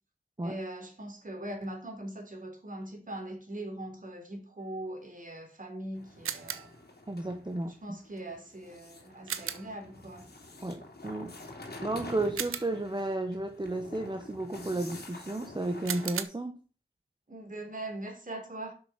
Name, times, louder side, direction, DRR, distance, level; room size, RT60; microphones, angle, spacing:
voice 1, 0.4-6.7 7.7-10.3 17.3-18.7, right 1 dB, 40° right, 3.4 m, -41 dB
sound 1, 5.9-16.1, left 2 dB, 50° left, 3.0 m, -48 dB
sound 2, 6.2-6.8 9.3-9.8 12.4-13.0 15.9-16.2, right 8 dB, 80° right, 0.8 m, -36 dB
voice 2, 7.1-7.7 10.6-11.3 11.8-16.6, right 2 dB, 20° right, 1.1 m, -33 dB
6.3 x 6.0 x 7.3 m
cardioid pair, 45°, 21 cm